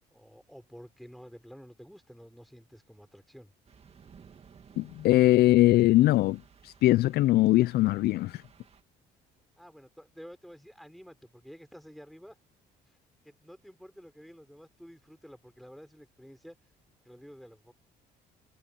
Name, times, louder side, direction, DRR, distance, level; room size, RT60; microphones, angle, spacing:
voice 1, 0.1-3.5 9.6-12.4 12.9-13.0 13.2-16.6 17.0-17.7, equal, ahead, 4.7 m, -50 dB
sound 1, 3.7-8.8, right 6 dB, 35° right, 2.4 m, -57 dB
voice 2, 4.8-8.4, left 17 dB, 70° left, 0.4 m, -22 dB
cardioid pair, 110°, 17 cm